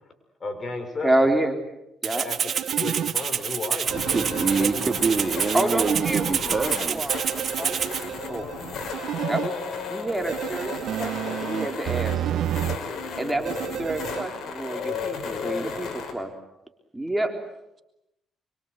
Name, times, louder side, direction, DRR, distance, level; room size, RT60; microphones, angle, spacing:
voice 1, 0.4-1.3 2.1-2.4 2.7-4.8, left 3 dB, 35° left, 7 dB, 6.1 m, -34 dB
voice 2, 1.0-1.6 2.0-2.3 5.5-8.5 9.3-9.6 9.9-12.4 13.2-16.3 16.9-17.3, right 1 dB, 10° right, 4 dB, 3.9 m, -28 dB
Rattle (instrument), 2.0-8.0, right 7 dB, 50° right, 2.5 m, -28 dB
sound 1, 2.1-3.1 3.9-6.3 7.1-9.5 10.3-12.8 13.4-14.3, right 11 dB, 75° right, 1.3 m, -31 dB
sound 2, 3.9-16.1, left 5 dB, 65° left, 5.8 m, -34 dB
voice 3, 3.9-7.1, right 4 dB, 35° right, 5 dB, 2.6 m, -26 dB
26.5 x 24.5 x 8.2 m, 0.88 s
cardioid pair, 90°, 0 cm